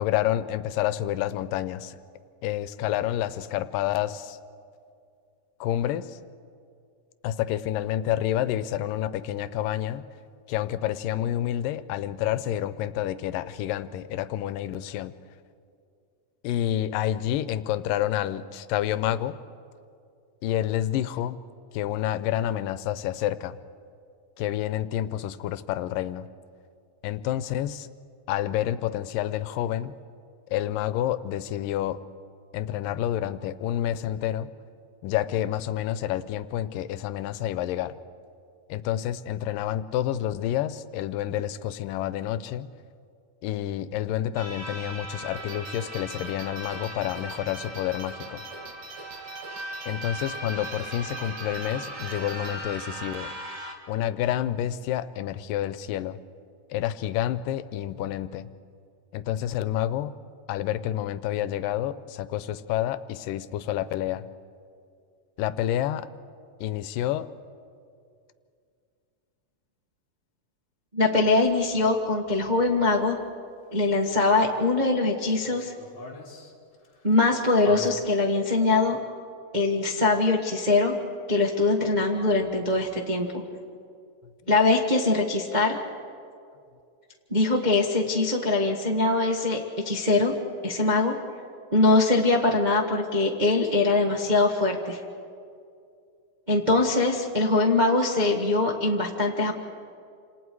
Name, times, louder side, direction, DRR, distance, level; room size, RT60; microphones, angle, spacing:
voice 1, 0.0-2.0 2.4-4.4 5.6-6.2 7.2-10.0 10.5-15.1 16.4-19.3 20.4-21.4 21.7-23.6 24.4-26.3 27.0-27.9 28.3-30.0 30.5-32.0 32.5-34.5 35.0-37.9 38.7-42.7 43.4-48.4 49.9-53.3 53.9-56.2 56.7-58.5 59.1-60.1 60.5-64.2 65.4-66.1 66.6-67.3, left 12 dB, 85° left, 14 dB, 2.4 m, -29 dB
sound 1, 44.4-53.7, right 1 dB, 30° right, 1.6 m, -38 dB
sound 2, 45.4-52.5, right 4 dB, 75° right, 3.5 m, -45 dB
voice 2, 70.9-73.2 73.7-75.7 77.0-79.0 79.5-80.9 81.3-83.4 84.5-85.8 87.3-90.3 90.6-91.1 91.7-95.0 96.5-99.5, left 2 dB, 50° right, -2 dB, 0.5 m, -22 dB
sound 3, 75.3-77.9, left 3 dB, 35° left, 2.2 m, -43 dB
28.5 x 27.5 x 4.7 m, 2.4 s
omnidirectional pair, 3.8 m